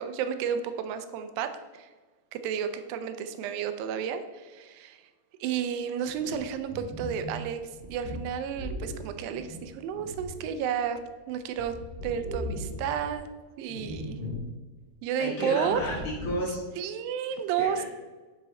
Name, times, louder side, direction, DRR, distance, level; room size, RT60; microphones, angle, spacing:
voice 1, 0.0-1.9 2.3-5.0 5.4-7.6 7.9-11.0 11.3-11.7 12.0-13.3 13.6-14.2 15.0-15.8 16.8-17.8, right 8 dB, 80° right, 9 dB, 2.3 m, -31 dB
sound 1, 6.0-11.0 11.3-13.2 13.7-14.5 14.8-14.9 15.6-16.5, left 1 dB, 25° right, 1.8 m, -39 dB
voice 2, 15.2-16.6 17.6-17.8, left 1 dB, 50° left, -5 dB, 1.0 m, -32 dB
10.5 x 6.3 x 4.2 m, 1.3 s
omnidirectional pair, 4.4 m